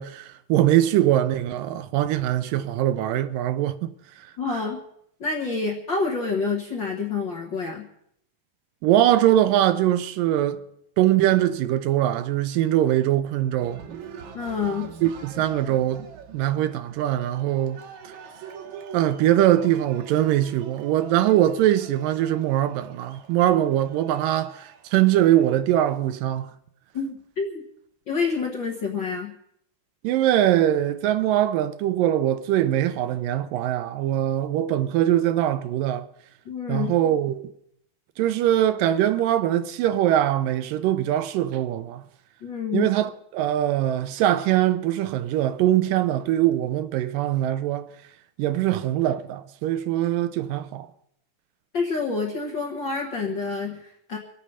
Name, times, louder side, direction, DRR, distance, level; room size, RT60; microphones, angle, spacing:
voice 1, 0.0-3.9 4.5-4.6 8.8-10.6 11.0-13.8 15.0-16.1 16.3-17.8 18.9-26.5 30.0-36.1 36.7-37.4 38.2-42.0 42.7-47.9 48.4-50.9, right 12 dB, 80° right, 2.3 m, -22 dB
voice 2, 4.4-4.8 5.2-7.9 14.3-14.9 26.9-27.6 28.1-29.3 36.4-36.9 42.4-42.9 51.7-54.2, left 4 dB, 50° left, 1.4 m, -28 dB
Cheering, 13.6-25.6, right 6 dB, 65° right, 2.3 m, -44 dB
24.5 x 8.5 x 5.5 m
omnidirectional pair, 4.1 m